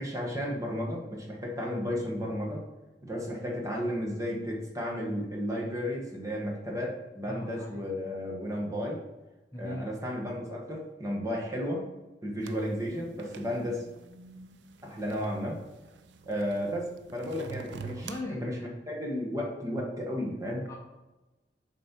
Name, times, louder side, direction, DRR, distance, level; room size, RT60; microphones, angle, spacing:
voice 1, 0.0-2.6 3.0-9.0 9.6-11.9 12.2-13.9 14.8-15.6 16.2-18.6 18.9-20.7, equal, 20° right, -1 dB, 1.2 m, -33 dB
voice 2, 7.3-7.7 9.5-9.8 18.0-18.7 20.7-20.8, left 1 dB, 15° left, -1 dB, 0.8 m, -39 dB
sound 1, 12.4-18.2, right 5 dB, 80° right, 0.5 m, -47 dB
7.1 x 4.3 x 4.4 m, 1.1 s
head